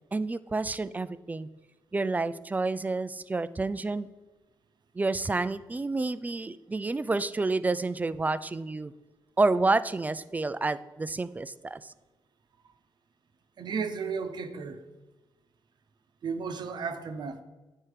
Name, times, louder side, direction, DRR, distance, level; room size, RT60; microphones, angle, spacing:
voice 1, 0.1-1.5 1.9-4.1 4.9-8.9 9.4-11.9, right 3 dB, 20° right, 15 dB, 0.4 m, -29 dB
voice 2, 13.6-14.8 16.2-17.4, right 5 dB, 60° right, 8 dB, 0.8 m, -34 dB
9.2 x 4.4 x 4.8 m, 1.1 s
cardioid pair, 80°, 8 cm